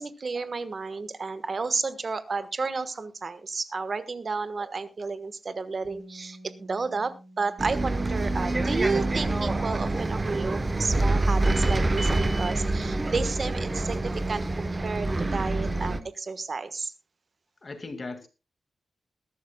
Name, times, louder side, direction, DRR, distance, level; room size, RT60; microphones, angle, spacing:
voice 1, 0.0-16.9, right 4 dB, 40° right, 12 dB, 1.3 m, -32 dB
Bass guitar, 5.8-12.1, right 1 dB, 80° right, 2.5 m, -53 dB
Bus, 7.6-16.0, right 2 dB, 20° right, 0.9 m, -26 dB
voice 2, 17.6-18.3, left 3 dB, 30° left, 8 dB, 2.0 m, -38 dB
21.5 x 12.5 x 2.2 m, 0.28 s
wide cardioid pair, 175°, 0 cm